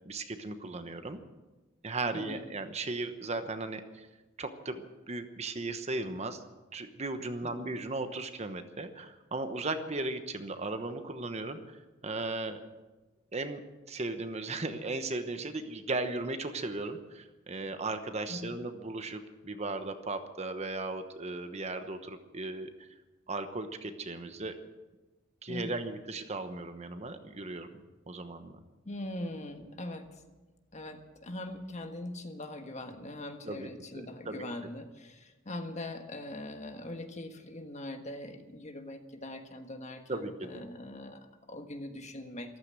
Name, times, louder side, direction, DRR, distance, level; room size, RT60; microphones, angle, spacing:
voice 1, 0.1-1.2 1.8-4.1 4.4-4.8 5.1-6.4 6.7-11.8 12.0-12.6 13.3-13.6 13.9-22.7 23.3-24.5 25.4-27.7 28.1-28.6 33.4-33.7 33.9-34.7 40.1-40.7, right 2 dB, 35° right, 8 dB, 1.0 m, -36 dB
voice 2, 2.1-2.5 7.4-7.7 18.3-18.6 25.5-25.8 28.8-30.2 30.7-42.6, left 1 dB, 35° left, 6 dB, 1.4 m, -42 dB
14.0 x 13.5 x 7.5 m, 1.1 s
head